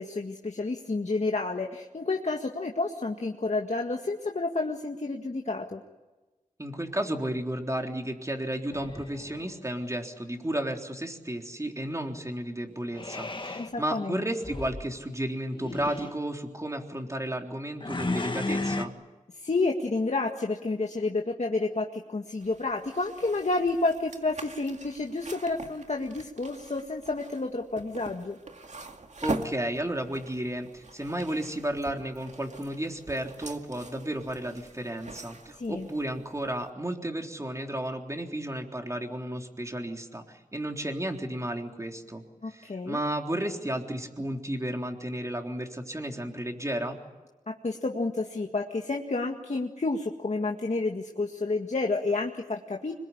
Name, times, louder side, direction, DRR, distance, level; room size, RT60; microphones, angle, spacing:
voice 1, 0.0-5.8 13.6-14.2 19.4-28.4 35.6-35.9 42.4-43.0 47.6-52.9, left 3 dB, 55° left, 2 dB, 1.9 m, -30 dB
voice 2, 6.6-18.9 29.2-47.0, right 1 dB, 20° right, 3 dB, 3.7 m, -33 dB
sound 1, 8.7-9.6 12.9-13.7 14.4-14.9 15.5-16.2 17.8-18.9, left 2 dB, 35° left, 1.9 m, -34 dB
sound 2, 22.4-36.7, right 3 dB, 60° right, 2.2 m, -43 dB
26.0 x 22.5 x 9.9 m, 1.2 s
wide cardioid pair, 65°, 14 cm